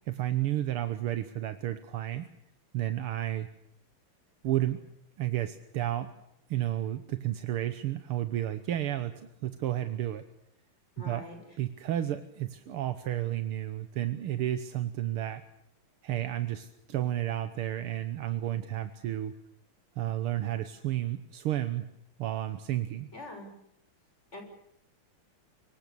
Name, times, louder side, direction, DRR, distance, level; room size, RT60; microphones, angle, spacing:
voice 1, 0.1-2.3 2.7-3.5 4.4-4.8 5.2-6.1 6.5-10.2 11.0-11.2 11.6-15.4 16.0-19.4 20.0-21.9 22.2-23.1, right 13 dB, 80° right, 9 dB, 2.0 m, -32 dB
voice 2, 11.0-11.4 23.1-23.5 24.3-24.4, left 2 dB, 30° left, 4 dB, 6.4 m, -43 dB
25.0 x 24.5 x 6.9 m, 0.77 s
omnidirectional pair, 2.4 m